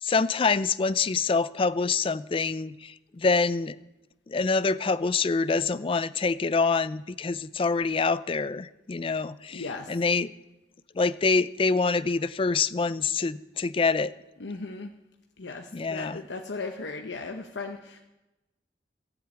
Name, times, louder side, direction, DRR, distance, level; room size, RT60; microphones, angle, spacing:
voice 1, 0.0-3.8 4.3-9.6 9.9-10.3 11.0-14.1 15.7-16.2, left 4 dB, 30° left, 16 dB, 0.4 m, -26 dB
voice 2, 9.5-9.9 14.4-14.9 15.4-18.0, left 3 dB, 85° left, 3 dB, 0.9 m, -37 dB
13.0 x 7.9 x 8.3 m, 1.0 s
head